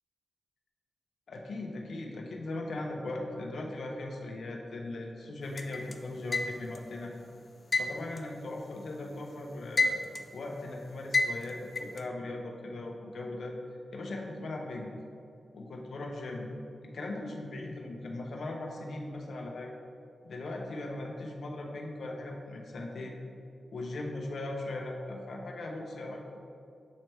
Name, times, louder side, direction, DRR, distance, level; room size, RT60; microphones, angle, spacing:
voice 1, 1.3-7.1 7.8-10.0 10.3-13.6 13.9-14.9 15.5-16.5 16.8-19.7 20.2-23.2 23.7-26.2, left 2 dB, 65° left, 0 dB, 0.6 m, -39 dB
sound 1, 5.6-6.9 7.7-9.1 9.5-10.4 11.1-12.0, left 3 dB, 35° left, 0.3 m, -29 dB
7.4 x 3.2 x 4.5 m, 2.4 s
wide cardioid pair, 150°, 0 cm